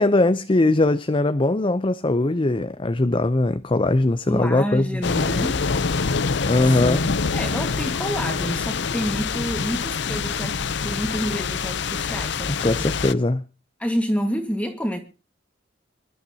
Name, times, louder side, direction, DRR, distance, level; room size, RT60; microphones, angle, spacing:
voice 1, 0.0-4.9 6.5-7.0 12.6-13.4, left 2 dB, 25° left, 0.6 m, -20 dB
voice 2, 4.3-5.6 6.6-12.9 13.8-15.0, equal, 5° left, 1.7 m, -28 dB
sound 1, 5.0-13.1, left 5 dB, 65° left, 0.7 m, -25 dB
26.0 x 12.0 x 2.8 m
head